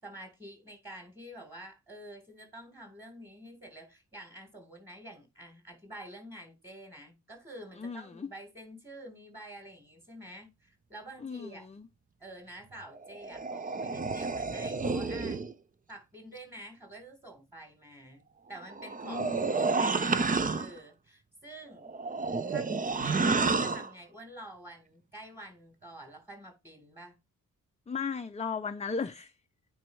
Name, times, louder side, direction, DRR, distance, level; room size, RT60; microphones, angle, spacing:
voice 1, 0.0-11.7 12.2-15.4 15.9-21.9 22.5-22.7 23.0-27.2, right 1 dB, 10° right, 3.8 m, -48 dB
voice 2, 7.8-8.3 11.2-11.9 19.0-19.4 27.9-29.3, left 5 dB, 20° left, 0.5 m, -36 dB
sound 1, 13.0-15.5 18.6-20.8 21.8-23.9, right 4 dB, 25° right, 0.5 m, -30 dB
9.2 x 4.7 x 3.2 m
wide cardioid pair, 130°, 32 cm